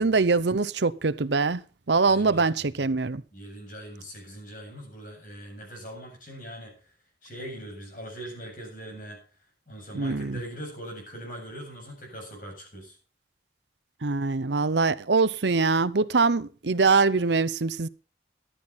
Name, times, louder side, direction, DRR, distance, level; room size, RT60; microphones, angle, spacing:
voice 1, 0.0-1.6 1.9-3.2 9.9-10.4 14.0-17.9, right 4 dB, 75° right, 0.8 m, -23 dB
voice 2, 2.1-2.9 3.3-6.7 7.2-9.2 9.7-12.9, right 1 dB, 50° left, 7.6 m, -41 dB
14.0 x 11.5 x 4.1 m
head